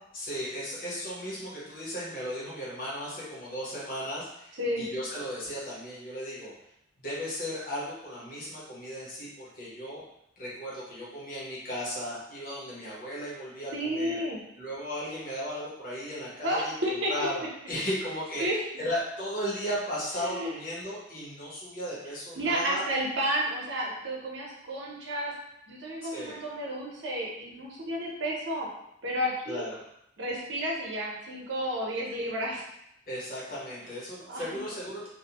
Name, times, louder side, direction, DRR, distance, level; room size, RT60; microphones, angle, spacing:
voice 1, 0.1-6.5 7.0-10.0 10.4-14.2 14.6-16.7 17.1-22.9 26.1-26.4 29.5-29.8 33.1-35.1, equal, 50° left, -7 dB, 0.9 m, -36 dB
voice 2, 13.7-14.4 16.4-17.3 18.4-18.6 20.2-20.6 22.4-25.3 25.7-28.7 29.0-29.7 30.2-32.6 34.2-34.7, equal, 70° right, -3 dB, 0.7 m, -31 dB
2.5 x 2.0 x 2.8 m, 0.78 s
head